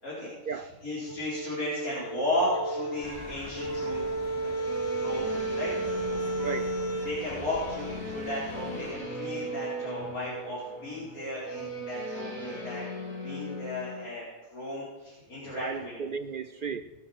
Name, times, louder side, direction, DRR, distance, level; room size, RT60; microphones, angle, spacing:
voice 1, 0.0-4.0 4.4-4.5 5.0-5.7 7.0-14.2 14.5-16.0, left 1 dB, 85° left, -8 dB, 5.1 m, -34 dB
sound 1, 1.1-7.2, right 2 dB, 30° left, 0.6 m, -33 dB
sound 2, 3.0-8.9, equal, 15° right, 2.7 m, -46 dB
sound 3, 4.6-14.0, equal, 60° left, 3.8 m, -38 dB
voice 2, 6.4-6.8 15.5-16.8, right 5 dB, 60° right, 10 dB, 0.5 m, -35 dB
20.5 x 9.1 x 5.9 m, 1.1 s
omnidirectional pair, 1.5 m